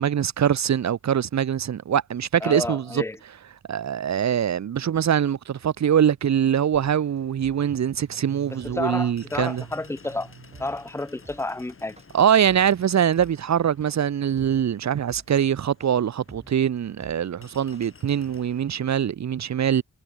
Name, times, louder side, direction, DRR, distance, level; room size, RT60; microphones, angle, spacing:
voice 1, 0.0-3.0 3.7-9.6 12.1-19.8, right 9 dB, 60° right, 0.8 m, -23 dB
voice 2, 2.4-3.2 8.6-10.3 10.6-11.9, left 2 dB, 10° left, 0.7 m, -30 dB
sound 1, 6.2-11.1, right 7 dB, 80° right, 7.5 m, -49 dB
sound 2, 7.0-18.7, left 5 dB, 45° left, 3.9 m, -54 dB
sound 3, 7.2-17.8, right 2 dB, 20° right, 6.1 m, -48 dB
wide cardioid pair, 160°, 31 cm